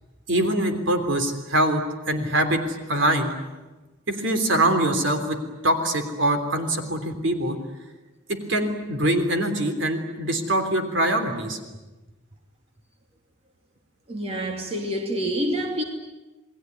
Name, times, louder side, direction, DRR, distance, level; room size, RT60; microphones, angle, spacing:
voice 1, 0.3-1.8 2.1-3.3 4.1-5.4 5.6-7.6 8.3-11.6, right 1 dB, 60° right, 3.5 m, -23 dB
voice 2, 14.1-15.8, equal, 30° right, 2.8 m, -27 dB
29.0 x 20.5 x 9.6 m
head